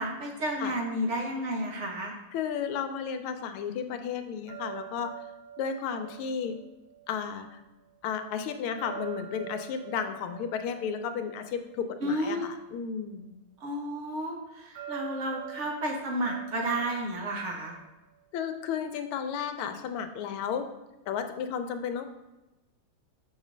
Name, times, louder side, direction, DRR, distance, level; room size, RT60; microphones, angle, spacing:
voice 1, 0.0-2.1 12.0-12.5 13.6-17.8, right 1 dB, 60° right, 1 dB, 0.7 m, -31 dB
voice 2, 2.3-5.1 5.6-6.6 7.1-7.6 8.0-13.3 18.3-20.7 21.1-22.1, left 7 dB, 90° left, 8 dB, 1.5 m, -33 dB
sound 1, 4.5-7.6 8.8-12.3 14.8-17.8, right 10 dB, 75° right, 2.1 m, -45 dB
6.9 x 3.2 x 5.1 m, 1.1 s
omnidirectional pair, 2.3 m